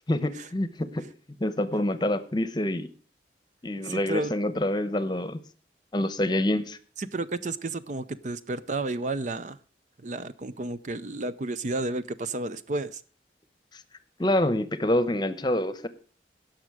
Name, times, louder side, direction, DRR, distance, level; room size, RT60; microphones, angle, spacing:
voice 1, 0.1-1.1 1.4-2.9 3.6-5.4 5.9-6.8 14.2-15.9, left 1 dB, 25° left, 13 dB, 0.9 m, -26 dB
voice 2, 3.8-4.3 7.0-9.6 10.0-13.0, right 2 dB, 45° right, 13 dB, 0.5 m, -32 dB
17.0 x 6.3 x 4.8 m, 0.41 s
head